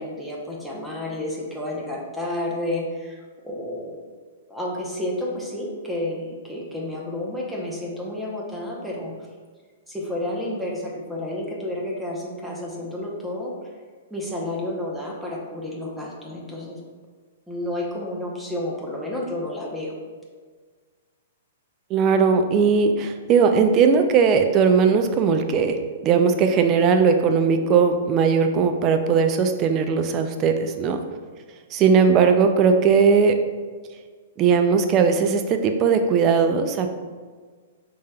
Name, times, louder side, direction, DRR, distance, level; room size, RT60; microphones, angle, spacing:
voice 1, 0.0-4.0 4.5-9.1 9.9-13.5 14.1-16.8 17.5-20.0, left 1 dB, 5° right, -3 dB, 0.7 m, -30 dB
voice 2, 21.9-25.8 26.0-31.0 31.7-33.3 34.4-36.9, right 5 dB, 30° right, 7 dB, 0.4 m, -18 dB
5.0 x 3.4 x 2.2 m, 1.5 s
hypercardioid pair, 140°, 0 cm